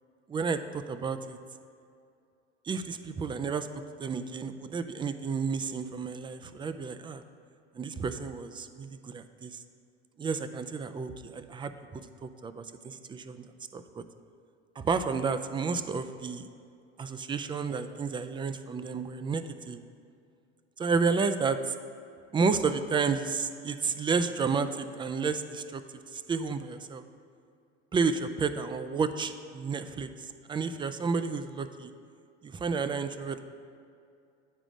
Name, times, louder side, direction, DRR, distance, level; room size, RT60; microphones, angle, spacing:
voice 1, 0.3-1.4 2.6-3.7 4.0-7.2 7.7-9.6 10.2-14.0 14.8-16.5 17.0-19.8 20.8-21.7 22.3-25.8 26.1-27.0 27.9-31.9 32.4-33.4, right 5 dB, 15° right, 10 dB, 0.3 m, -31 dB
9.2 x 4.9 x 5.1 m, 2.4 s
hypercardioid pair, 80°, 34 cm